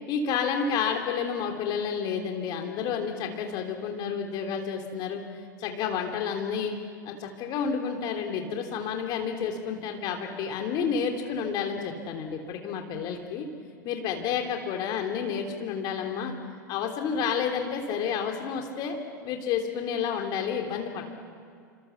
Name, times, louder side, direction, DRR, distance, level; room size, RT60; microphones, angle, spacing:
voice 1, 0.1-5.2 5.6-6.7 7.0-13.5 13.8-16.3 16.7-21.0, left 6 dB, 40° left, 3 dB, 3.3 m, -30 dB
29.5 x 26.5 x 7.1 m, 2.3 s
figure-of-eight pair, 85°, 10 cm